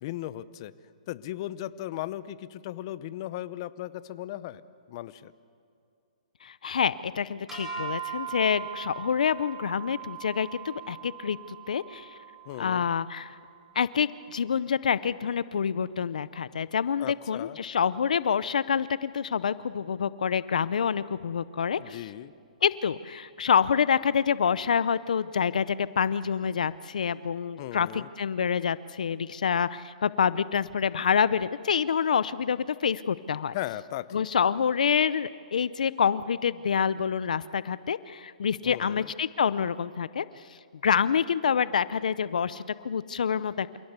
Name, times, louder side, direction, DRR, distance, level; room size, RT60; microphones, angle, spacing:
voice 1, 0.0-0.7 1.1-4.6 4.9-5.3 12.5-12.9 17.0-17.6 21.8-22.3 27.6-28.1 33.5-34.2 38.6-39.1, left 14 dB, 40° left, 15 dB, 0.8 m, -37 dB
voice 2, 6.4-12.2 12.6-13.4 13.8-22.0 22.6-33.5 34.1-40.3 40.8-43.8, left 7 dB, 75° left, 17 dB, 0.7 m, -27 dB
sound 1, 7.5-13.8, right 9 dB, 10° right, 6.3 m, -40 dB
27.5 x 17.5 x 8.2 m, 2.4 s
hypercardioid pair, 150°, 4 cm